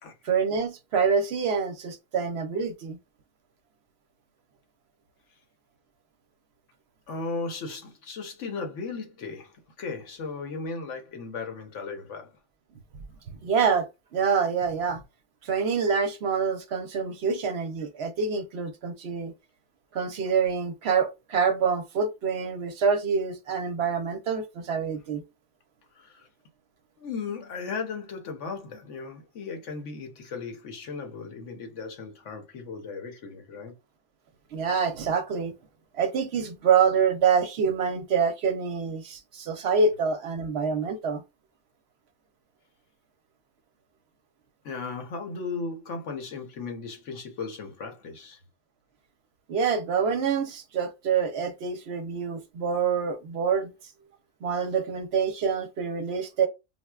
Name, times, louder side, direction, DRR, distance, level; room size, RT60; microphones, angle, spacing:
voice 1, 0.2-3.0 13.4-15.0 15.4-19.3 19.9-25.2 34.5-35.5 35.9-41.2 49.5-53.7 54.4-56.5, right 6 dB, 65° right, 0.8 m, -26 dB
voice 2, 7.1-12.3 25.9-26.3 27.0-33.7 44.6-48.4, left 4 dB, 70° left, 1.2 m, -36 dB
4.2 x 2.1 x 2.2 m
omnidirectional pair, 1.3 m